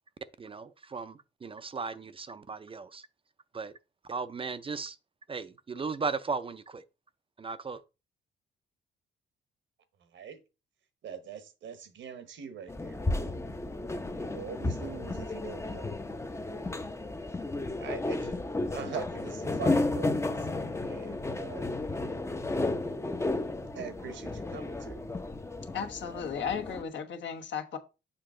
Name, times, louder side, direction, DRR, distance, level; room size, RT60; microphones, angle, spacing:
voice 1, 0.4-3.1 3.5-3.7 4.0-5.0 5.3-6.8 7.4-7.8, right 4 dB, 25° right, 0.5 m, -36 dB
voice 2, 10.0-10.4 11.0-13.3 14.0-15.9 16.6-16.9 17.8-18.4 18.7-21.7 23.7-25.0, right 7 dB, 70° right, 1.2 m, -43 dB
sound 1, 12.7-26.8, left 2 dB, 15° left, 0.6 m, -33 dB
voice 3, 25.7-27.8, left 7 dB, 65° left, 1.3 m, -35 dB
6.8 x 4.9 x 3.8 m
cardioid pair, 90°, 20 cm